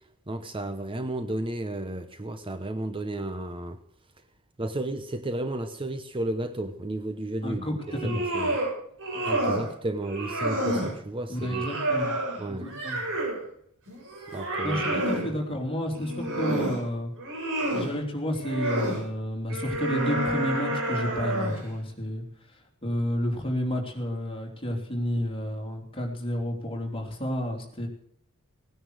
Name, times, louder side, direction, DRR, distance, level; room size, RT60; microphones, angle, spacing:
voice 1, 0.3-3.8 4.6-7.7 8.1-8.6 9.2-11.7 12.4-12.7 14.3-15.0 15.3-15.4, right 1 dB, 25° right, 8 dB, 0.9 m, -33 dB
voice 2, 7.4-7.8 8.0-8.2 9.1-9.2 11.3-12.2 12.5-13.0 14.6-17.1 17.7-27.9, equal, 25° left, 1 dB, 3.4 m, -31 dB
sound 1, 7.8-8.7 9.0-9.7 10.0-10.9 11.4-13.4 13.9-15.3 15.9-16.8 17.2-17.9 18.4-19.0 19.5-21.7, right 1 dB, 60° right, 7.6 m, -29 dB
18.0 x 9.9 x 6.4 m, 0.64 s
head